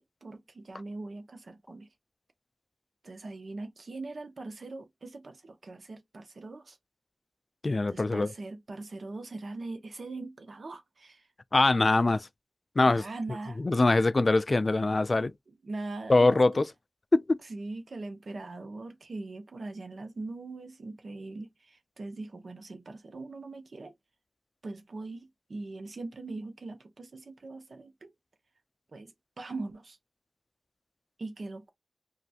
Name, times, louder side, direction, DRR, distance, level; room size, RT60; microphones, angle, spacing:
voice 1, 0.0-1.9 3.0-6.8 7.9-11.3 12.8-13.8 15.5-16.6 17.4-23.9 24.6-28.1 28.9-30.0 31.2-31.7, right 2 dB, 75° right, 0.8 m, -41 dB
voice 2, 7.6-8.3 11.5-12.3 12.8-13.0 13.6-15.3 16.1-16.7 17.1-17.4, left 2 dB, 50° left, 0.3 m, -23 dB
3.1 x 2.4 x 2.8 m
cardioid pair, 50°, 0 cm